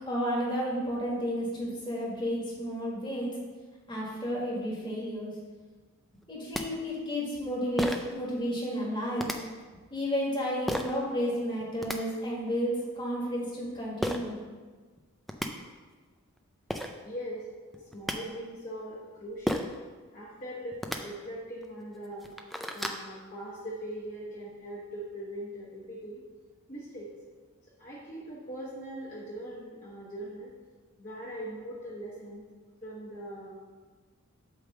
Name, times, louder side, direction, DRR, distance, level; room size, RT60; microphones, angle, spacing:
voice 1, 0.1-3.3 3.9-5.3 6.3-9.3 9.9-14.4, equal, 20° left, -4 dB, 1.7 m, -32 dB
sound 1, 6.2-6.3 6.5-6.6 7.8-8.1 9.2-9.4 10.7-10.9 11.6-12.0 14.0-14.2 15.0-15.1 15.3-15.5 16.4-16.5 16.7-16.9 17.7-18.2 19.5-19.8 20.7-21.0 21.6-21.7 22.1-23.0, equal, ahead, 0.3 m, -31 dB
voice 2, 17.0-17.5 17.7-19.7 20.1-22.3 22.7-26.2 26.7-27.1 27.8-30.5 31.0-32.5 32.8-33.5, right 1 dB, 40° left, -7 dB, 1.3 m, -41 dB
8.1 x 3.4 x 6.6 m, 1.4 s
head